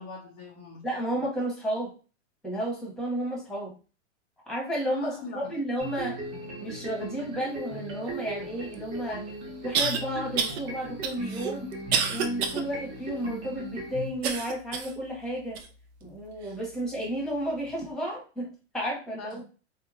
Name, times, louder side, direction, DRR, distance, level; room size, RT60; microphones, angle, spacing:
voice 1, 0.0-0.9 1.1-1.2 5.0-5.5 16.5-16.7 19.2-19.4, left 3 dB, 20° left, -2 dB, 0.4 m, -41 dB
voice 2, 0.8-1.9 2.4-3.7 4.5-6.2 6.6-9.3 9.6-11.7 12.1-15.6 16.0-19.4, right 1 dB, ahead, -3 dB, 1.0 m, -32 dB
sound 1, 5.8-14.1, right 1 dB, 30° right, 1.2 m, -38 dB
sound 2, 8.7-8.8 9.7-10.0 10.4-10.6 11.0-12.6 13.1-13.2 14.2-15.0 15.5-15.7 16.4-16.5, right 6 dB, 60° right, 0.5 m, -28 dB
2.8 x 2.2 x 2.5 m, 0.34 s
hypercardioid pair, 125°, 37 cm